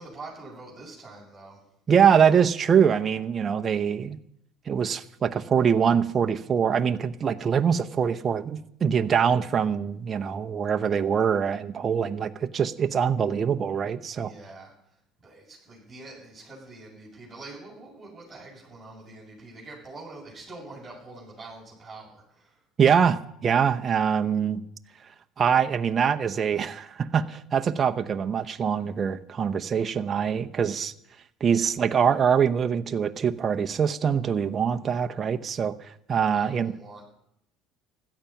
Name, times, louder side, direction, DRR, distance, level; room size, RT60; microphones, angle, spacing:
voice 1, 0.0-1.6 14.2-14.7 15.2-22.6 36.3-37.0, right 2 dB, 10° right, -9 dB, 8.0 m, -45 dB
voice 2, 1.9-4.2 4.7-14.3 22.8-24.6 25.4-30.9 31.4-36.7, right 7 dB, 35° right, 7 dB, 0.8 m, -24 dB
16.5 x 12.5 x 5.8 m, 0.76 s
supercardioid pair, 105°, 0 cm